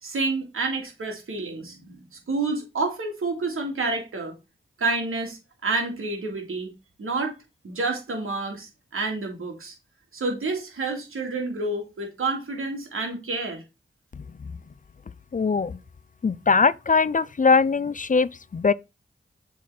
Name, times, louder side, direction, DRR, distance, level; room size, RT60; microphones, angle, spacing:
voice 1, 0.0-4.3 4.8-6.7 7.0-7.4 7.6-9.7 10.1-13.6, right 3 dB, 80° right, 2.8 m, -29 dB
voice 2, 15.3-15.8 16.2-18.7, left 4 dB, 40° left, 0.5 m, -21 dB
7.2 x 4.2 x 4.4 m
cardioid pair, 40°, 21 cm